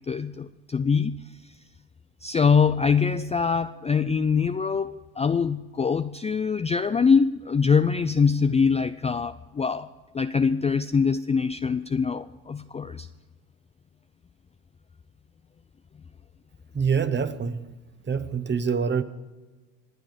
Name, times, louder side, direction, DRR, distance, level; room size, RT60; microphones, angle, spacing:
voice 1, 0.1-1.2 2.2-9.9 10.1-13.1, left 5 dB, 20° left, 0.4 m, -23 dB
voice 2, 16.7-17.6 18.1-19.0, right 6 dB, 30° right, 1.2 m, -25 dB
25.0 x 9.0 x 5.1 m
supercardioid pair, 70°, 38 cm